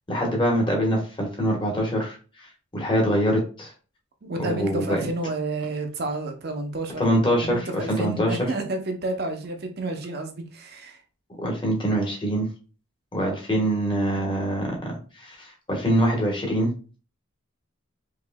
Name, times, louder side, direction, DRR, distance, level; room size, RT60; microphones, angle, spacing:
voice 1, 0.1-2.2 2.7-3.7 4.4-5.0 7.0-8.4 11.4-12.5 13.1-14.9 15.2-16.7, equal, 20° left, -1 dB, 1.1 m, -24 dB
voice 2, 4.2-7.0 7.4-11.0, right 2 dB, 45° right, 5 dB, 0.7 m, -30 dB
4.8 x 3.0 x 2.2 m, 0.36 s
head